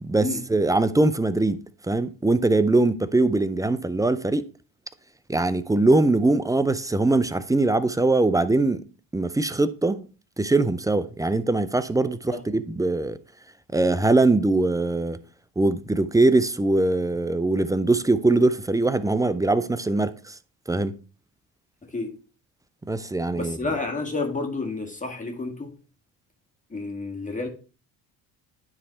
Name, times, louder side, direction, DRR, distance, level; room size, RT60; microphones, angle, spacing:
voice 1, 0.0-1.6 1.9-4.5 5.3-8.8 9.1-10.1 10.4-13.2 13.7-15.2 15.6-20.3 20.7-20.9 22.9-23.6, right 2 dB, 10° right, 0.4 m, -22 dB
voice 2, 23.4-25.8 26.7-27.5, left 3 dB, 20° left, 1.8 m, -30 dB
9.7 x 3.2 x 4.3 m
supercardioid pair, 70°, 42 cm